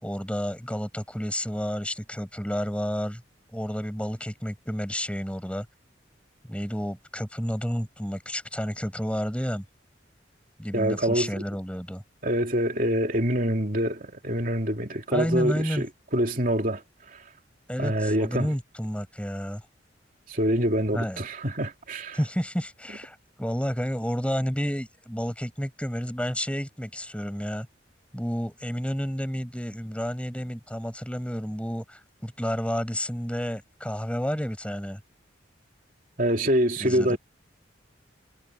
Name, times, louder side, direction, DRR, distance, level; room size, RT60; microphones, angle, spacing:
voice 1, 0.0-3.2 3.5-5.7 6.4-9.6 10.6-12.0 15.1-15.9 17.7-19.6 20.9-21.2 22.1-27.7 28.1-35.0 36.8-37.2, equal, 5° left, 5.4 m, -30 dB
voice 2, 10.7-11.3 12.2-15.9 16.1-16.8 17.1-17.2 17.8-18.5 20.3-22.2 36.2-37.2, right 1 dB, 45° right, 2.9 m, -25 dB
head